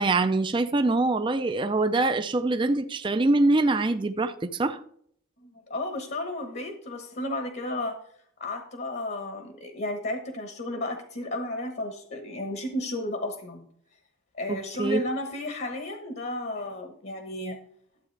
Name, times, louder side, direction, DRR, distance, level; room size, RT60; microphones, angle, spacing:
voice 1, 0.0-4.8 14.5-15.0, right 2 dB, 20° right, 0.4 m, -24 dB
voice 2, 5.4-8.0 8.4-13.7 14.3-17.6, left 1 dB, 50° left, 1.1 m, -33 dB
12.0 x 8.2 x 3.3 m
head